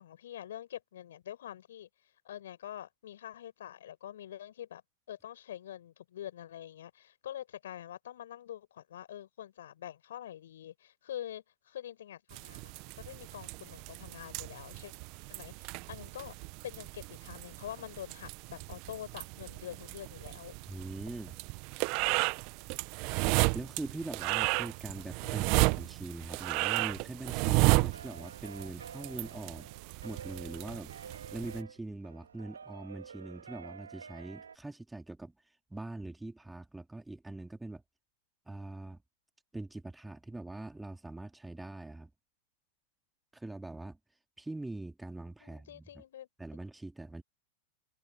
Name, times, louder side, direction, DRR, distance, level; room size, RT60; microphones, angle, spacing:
voice 1, 0.0-1.9 2.2-4.8 5.1-14.9 15.3-16.3 16.6-20.5 45.4-46.3, left 11 dB, 70° left, 6.0 m, -45 dB
sound 1, 12.3-31.6, right 29 dB, 50° right, 1.3 m, -33 dB
voice 2, 20.7-21.4 23.5-29.7 30.0-35.3 35.7-37.8 38.5-39.0 39.5-42.1 43.3-44.0 44.4-46.0 46.4-47.2, right 2 dB, 5° right, 3.1 m, -42 dB
sound 2, 27.9-34.6, right 6 dB, 80° right, 2.6 m, -49 dB
figure-of-eight pair, 95°, 0 cm